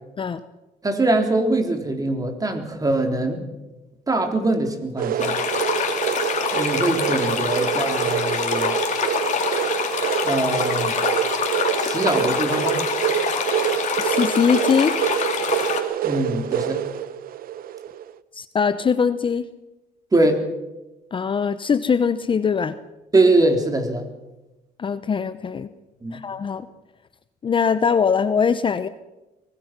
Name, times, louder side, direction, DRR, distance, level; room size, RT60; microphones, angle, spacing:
voice 1, 0.8-3.4 4.1-5.4 6.5-8.7 10.2-10.9 11.8-12.8 16.0-16.8 20.1-20.4 23.1-24.1 26.0-26.2, right 2 dB, 20° right, 5 dB, 3.5 m, -22 dB
sound 1, 5.0-18.1, right 10 dB, 60° right, 0.9 m, -26 dB
sound 2, 5.2-15.8, left 7 dB, 45° left, 3.2 m, -25 dB
voice 2, 14.0-14.9 18.3-19.5 21.1-22.7 24.8-25.7 26.1-26.6 27.4-28.9, left 6 dB, 30° left, 13 dB, 0.8 m, -21 dB
23.5 x 19.5 x 6.0 m, 1.0 s
cardioid pair, 110°, 17 cm